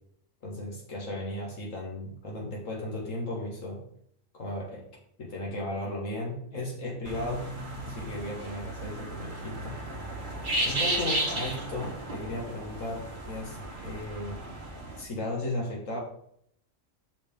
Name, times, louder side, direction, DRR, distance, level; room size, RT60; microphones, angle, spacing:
voice 1, 0.4-3.8 4.3-4.8 5.2-7.5 7.8-9.8 10.6-14.4 14.9-16.0, left 1 dB, 75° left, -1 dB, 1.8 m, -35 dB
sound 1, 7.0-15.0, right 1 dB, 40° right, 1.4 m, -34 dB
6.8 x 6.1 x 3.5 m, 0.69 s
omnidirectional pair, 1.4 m